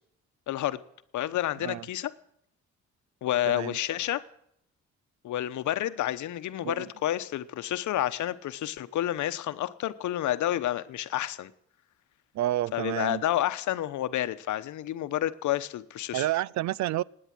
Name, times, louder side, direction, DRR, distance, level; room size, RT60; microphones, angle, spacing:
voice 1, 0.5-0.8 1.1-2.1 3.2-4.2 5.2-11.5 12.7-16.3, left 13 dB, 75° left, 1.0 m, -30 dB
voice 2, 3.5-3.8 6.6-6.9 12.3-13.2 16.1-17.0, right 14 dB, 65° right, 0.5 m, -29 dB
17.5 x 9.9 x 7.6 m
cardioid pair, 90°, 30 cm